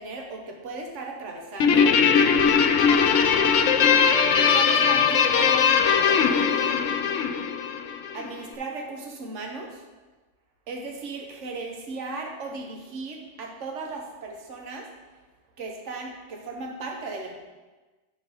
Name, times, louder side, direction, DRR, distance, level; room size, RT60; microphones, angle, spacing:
voice 1, 0.0-1.9 4.5-7.1 8.1-9.8 10.7-14.9 15.6-17.4, right 3 dB, 75° right, 1 dB, 1.3 m, -36 dB
Guitar, 1.6-8.3, left 6 dB, 85° left, 1.0 m, -20 dB
10.5 x 4.1 x 5.1 m, 1.2 s
omnidirectional pair, 1.3 m